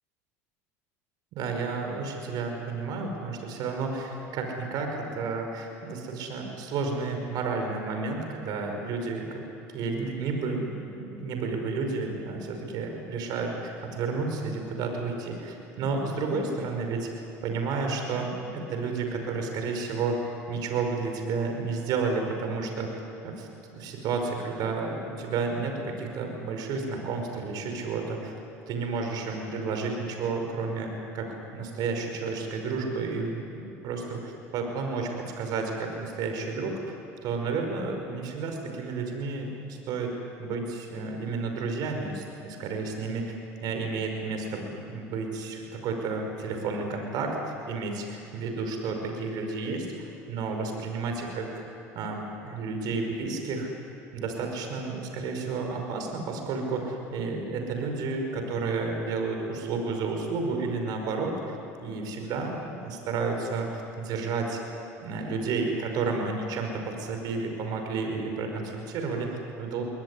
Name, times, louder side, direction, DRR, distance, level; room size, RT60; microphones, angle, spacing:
voice 1, 1.3-9.4 9.7-17.1 17.4-28.3 28.7-37.0 37.2-40.1 40.4-43.4 43.6-47.4 47.7-51.7 51.9-53.7 54.1-61.6 61.8-64.6 65.0-69.8, right 4 dB, 60° right, 4 dB, 5.3 m, -31 dB
22.5 x 19.0 x 9.9 m, 2.9 s
supercardioid pair, 90°, 8 cm